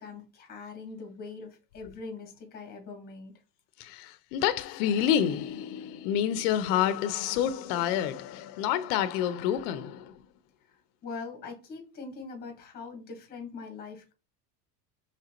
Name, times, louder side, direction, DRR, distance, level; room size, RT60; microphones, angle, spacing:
voice 1, 0.0-3.3 10.7-14.1, left 4 dB, 20° left, 1.2 m, -42 dB
voice 2, 3.8-10.2, left 10 dB, 85° left, 0.6 m, -28 dB
5.0 x 3.2 x 2.9 m
cardioid pair, 170°, 45 cm